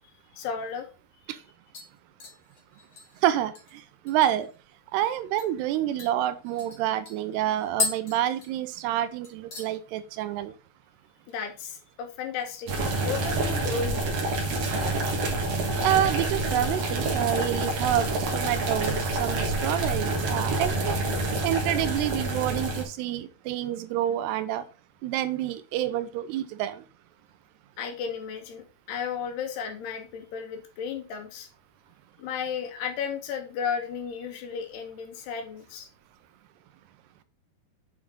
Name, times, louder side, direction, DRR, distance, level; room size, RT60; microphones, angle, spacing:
voice 1, 0.3-0.9 11.3-12.7 13.0-14.0 27.8-31.5 32.2-35.9, left 6 dB, 80° left, 5 dB, 3.3 m, -34 dB
sound 1, 0.7-0.8 1.1-1.4 1.7-4.6 4.9-5.0 5.4-5.5 6.0-9.0 9.2-9.7 10.1-10.5 10.8-10.9 13.0-13.6 13.9-14.6 15.0-15.3 15.9-16.8 17.1-17.2, left 4 dB, 40° left, 2.3 m, -38 dB
voice 2, 4.1-4.5 4.9-10.5 15.8-18.1 18.3-21.0 21.4-24.6 25.0-26.8, right 12 dB, 85° right, 12 dB, 2.8 m, -28 dB
sound 2, 12.7-22.8, right 2 dB, 55° right, 1.9 m, -27 dB
7.8 x 4.8 x 3.7 m, 0.33 s
omnidirectional pair, 4.7 m